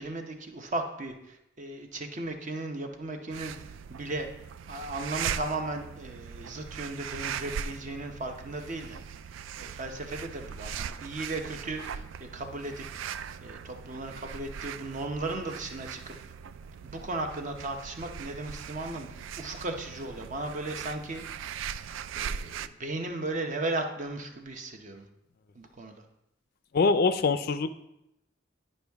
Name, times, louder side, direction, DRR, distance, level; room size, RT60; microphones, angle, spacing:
voice 1, 0.0-3.5 3.9-4.3 4.7-9.0 9.6-13.0 13.4-16.1 16.8-21.2 22.1-25.1 25.5-26.0, right 2 dB, 40° right, 4 dB, 0.8 m, -36 dB
sound 1, 3.3-22.7, right 8 dB, 80° right, 0.3 m, -40 dB
voice 2, 26.7-27.7, left 4 dB, 50° left, 11 dB, 0.4 m, -24 dB
10.0 x 5.4 x 3.5 m, 0.84 s
head